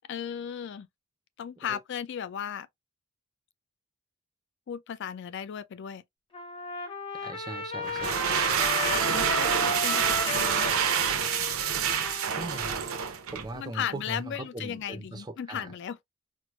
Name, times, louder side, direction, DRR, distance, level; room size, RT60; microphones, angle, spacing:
voice 1, 0.1-0.9 1.4-2.7 4.7-6.0 8.8-10.7 13.5-16.0, left 8 dB, 55° left, 0.3 m, -36 dB
Trumpet, 6.3-13.0, left 2 dB, 25° left, 0.8 m, -35 dB
voice 2, 7.1-8.2 12.4-12.8 13.3-15.7, right 2 dB, 20° right, 0.4 m, -39 dB
sound 1, 7.8-13.6, right 7 dB, 70° right, 0.6 m, -27 dB
4.5 x 2.0 x 2.3 m
head